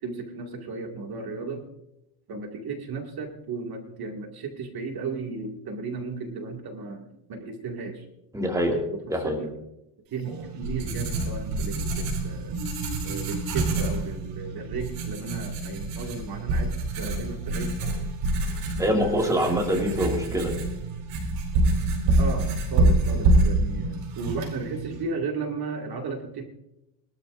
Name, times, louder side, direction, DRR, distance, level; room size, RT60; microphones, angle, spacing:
voice 1, 0.0-1.7 2.3-8.1 9.2-9.5 10.1-12.6 13.0-17.7 19.0-19.4 20.1-20.4 22.2-26.4, right 4 dB, 45° right, 3 dB, 2.3 m, -35 dB
voice 2, 8.3-8.8 9.1-9.4 18.8-20.5, equal, 5° right, 1 dB, 2.3 m, -24 dB
Writing, 10.2-25.0, right 2 dB, 80° right, 4.8 m, -26 dB
22.0 x 13.0 x 2.6 m, 0.87 s
cardioid pair, 130°, 50 cm